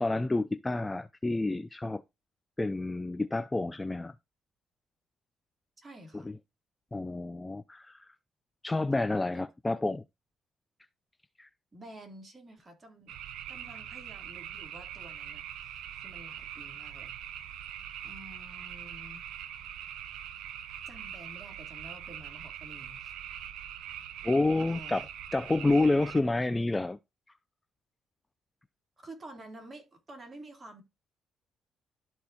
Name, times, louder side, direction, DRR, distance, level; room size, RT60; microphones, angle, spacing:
voice 1, 0.0-2.0 2.6-4.1 6.9-8.1 8.6-10.0 11.4-11.5 24.2-25.0 25.3-27.0, left 2 dB, 15° left, 0.4 m, -29 dB
voice 2, 5.8-6.3 8.9-9.4 11.7-13.2 13.5-17.3 18.0-19.2 20.8-23.2 24.7-25.1 29.0-30.8, right 1 dB, 30° right, 3.2 m, -50 dB
sound 1, 13.1-26.2, right 10 dB, 90° right, 0.8 m, -43 dB
13.0 x 4.5 x 2.8 m
cardioid pair, 90°, 0 cm